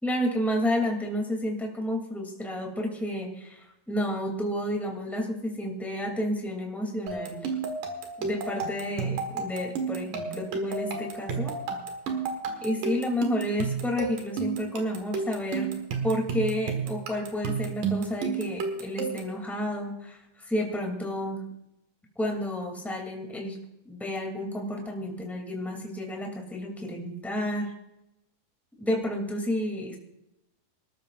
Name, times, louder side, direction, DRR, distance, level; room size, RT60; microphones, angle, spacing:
voice 1, 0.0-7.5 8.2-11.5 12.6-15.8 16.0-21.5 22.2-23.6 23.9-27.7 28.8-30.0, left 1 dB, ahead, 1 dB, 2.1 m, -31 dB
sound 1, 7.1-19.4, right 5 dB, 75° right, 3.3 m, -32 dB
27.0 x 13.0 x 2.5 m, 0.85 s
omnidirectional pair, 3.8 m